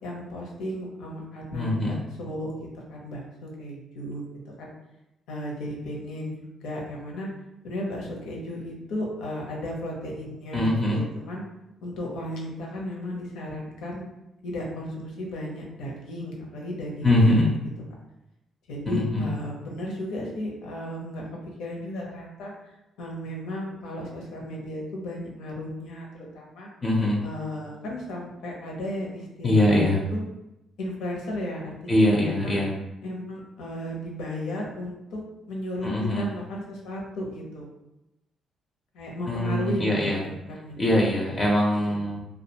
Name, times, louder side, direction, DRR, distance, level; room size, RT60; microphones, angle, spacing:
voice 1, 0.0-4.2 4.6-4.7 5.3-6.3 6.6-7.3 7.6-11.4 11.8-14.0 14.4-17.5 18.7-26.7 27.2-30.2 30.8-32.6 33.0-35.2 35.5-37.7 38.9-41.1 41.8-42.0, left 1 dB, 90° left, -1 dB, 0.6 m, -35 dB
voice 2, 1.5-2.0 10.5-11.0 17.0-17.5 18.9-19.3 26.8-27.2 29.4-30.0 31.9-32.7 35.8-36.2 39.3-40.2 40.8-42.2, left 1 dB, 30° left, -3 dB, 0.5 m, -22 dB
2.3 x 2.2 x 2.8 m, 0.92 s
cardioid pair, 90°, 0 cm